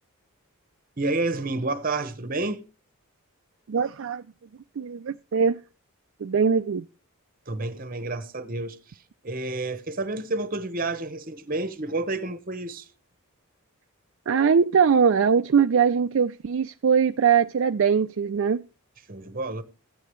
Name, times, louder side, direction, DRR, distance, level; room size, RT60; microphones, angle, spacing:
voice 1, 1.0-2.6 7.5-9.0 9.2-12.9 19.1-19.6, right 2 dB, 40° right, 1.0 m, -30 dB
voice 2, 3.7-4.2 4.8-5.6 6.2-6.8 14.3-18.6, right 6 dB, 60° right, 0.4 m, -21 dB
13.5 x 8.6 x 3.1 m
head